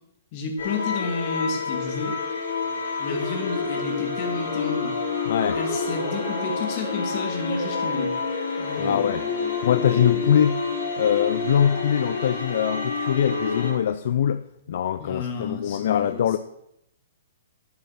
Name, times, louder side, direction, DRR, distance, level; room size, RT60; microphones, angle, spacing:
voice 1, 0.3-2.2 3.0-5.0 5.5-8.1 8.6-9.7 15.0-16.4, left 4 dB, 40° left, 2.5 m, -32 dB
sound 1, 0.6-13.7, left 4 dB, 80° left, 5.1 m, -28 dB
voice 2, 5.3-5.6 8.8-9.2 9.6-10.7 11.0-16.4, left 9 dB, 60° left, 0.5 m, -23 dB
9.6 x 8.6 x 6.0 m
hypercardioid pair, 155°, 0 cm